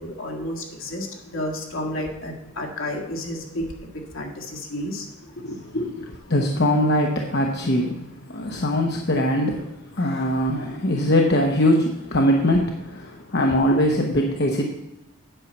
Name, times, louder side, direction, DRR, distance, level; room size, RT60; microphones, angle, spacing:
voice 1, 0.0-1.1 1.3-3.6 4.1-5.1 5.4-5.9, left 1 dB, 65° left, 1 dB, 1.8 m, -31 dB
voice 2, 6.3-14.6, left 1 dB, 50° left, 1 dB, 0.9 m, -22 dB
8.9 x 5.6 x 8.1 m, 0.88 s
head